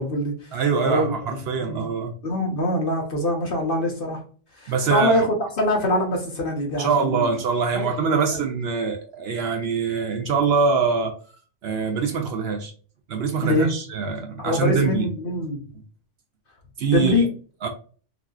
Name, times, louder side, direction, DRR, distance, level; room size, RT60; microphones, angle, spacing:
voice 1, 0.0-0.6 0.8-1.1 1.6-1.9 2.2-4.2 4.6-7.3 7.7-8.2 13.4-13.7 14.4-15.6 16.9-17.3, left 1 dB, 50° left, 0.9 m, -24 dB
voice 2, 0.5-2.1 4.7-5.2 6.8-11.1 11.6-12.7 13.1-15.1 16.8-17.3 17.6-17.7, right 5 dB, 65° right, 0.7 m, -24 dB
3.4 x 2.5 x 2.3 m
omnidirectional pair, 1.3 m